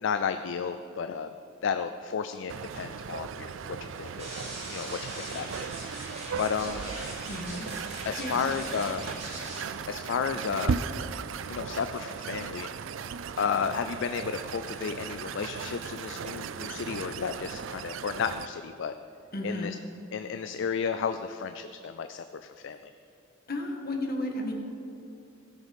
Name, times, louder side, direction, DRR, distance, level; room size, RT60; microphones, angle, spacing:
voice 1, 0.0-1.3 1.6-4.3 4.7-7.0 8.1-9.0 9.9-10.8 11.5-12.7 13.4-18.9 19.4-19.8 20.1-22.2 22.6-22.9, left 6 dB, 65° left, 9 dB, 0.4 m, -32 dB
sound 1, 2.5-18.5, right 6 dB, 70° right, 0.4 m, -37 dB
sound 2, 4.2-9.6, right 1 dB, 35° right, 3.2 m, -41 dB
voice 2, 7.3-7.7 8.2-8.9 19.3-19.7 23.5-24.5, left 1 dB, 50° left, 1 dB, 1.6 m, -34 dB
17.0 x 6.4 x 5.3 m, 2.9 s
head